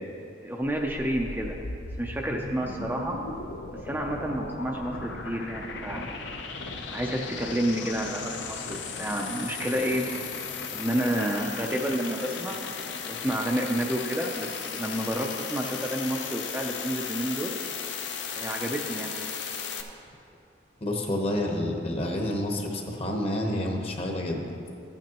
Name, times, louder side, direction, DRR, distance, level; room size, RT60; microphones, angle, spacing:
voice 1, 0.4-1.6 2.0-3.2 3.8-6.1 6.9-10.1 10.7-12.7 13.0-17.6 18.3-19.1, right 1 dB, 10° right, 0 dB, 0.4 m, -30 dB
sound 1, 0.6-19.8, left 5 dB, 75° left, 0.7 m, -36 dB
voice 2, 20.8-24.4, left 1 dB, 30° left, 1 dB, 1.0 m, -29 dB
14.0 x 9.0 x 3.0 m, 2.6 s
head